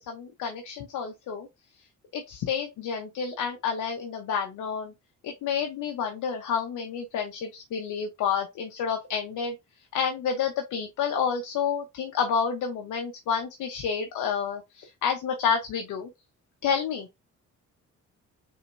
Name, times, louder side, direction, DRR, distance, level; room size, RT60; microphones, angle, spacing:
voice 1, 0.1-1.5 2.1-4.9 5.2-9.6 9.9-16.1 16.6-17.1, left 7 dB, 80° left, 1.0 m, -29 dB
5.0 x 3.6 x 2.6 m
cardioid pair, 90°, 30 cm